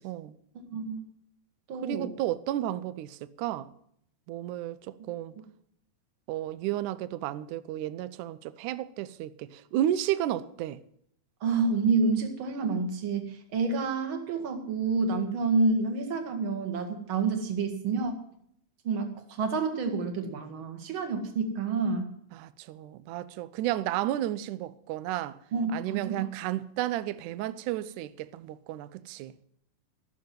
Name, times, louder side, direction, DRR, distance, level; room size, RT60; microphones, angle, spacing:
voice 1, 0.0-0.4 1.8-3.7 4.3-5.3 6.3-10.8 22.3-25.4 25.7-29.4, right 13 dB, 75° right, 1.9 m, -32 dB
voice 2, 0.7-1.0 1.7-2.1 11.4-18.1 18.8-22.1 25.5-26.3, right 4 dB, 40° right, 2.2 m, -28 dB
15.5 x 7.2 x 9.3 m
omnidirectional pair, 4.1 m